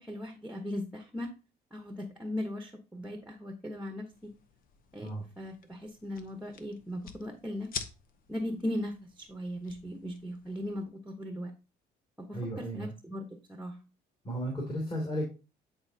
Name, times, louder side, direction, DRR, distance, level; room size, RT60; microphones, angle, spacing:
voice 1, 0.0-1.3 1.7-4.3 4.9-5.1 5.4-7.7 8.3-11.5 12.2-13.7, left 1 dB, 5° right, 4 dB, 1.0 m, -38 dB
sound 1, 4.1-10.8, left 6 dB, 55° left, 0.9 m, -48 dB
voice 2, 12.3-12.9 14.2-15.2, equal, 30° left, -2 dB, 2.5 m, -34 dB
9.6 x 4.4 x 2.8 m, 0.31 s
cardioid pair, 110°, 17 cm